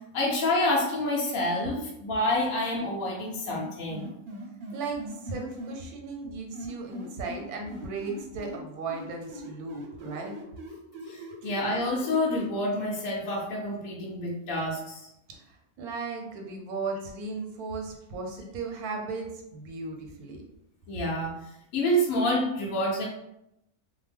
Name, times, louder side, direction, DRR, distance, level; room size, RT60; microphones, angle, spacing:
voice 1, 0.1-4.1 11.1-15.1 20.9-23.0, left 1 dB, 70° left, -3 dB, 1.0 m, -28 dB
sound 1, 3.5-5.8 6.5-8.6 8.9-12.5, equal, 55° right, 0.7 m, -40 dB
voice 2, 4.7-10.3 11.4-11.5 15.3-20.4, right 4 dB, 90° right, 1 dB, 1.1 m, -36 dB
2.7 x 2.1 x 3.3 m, 0.85 s
omnidirectional pair, 1.5 m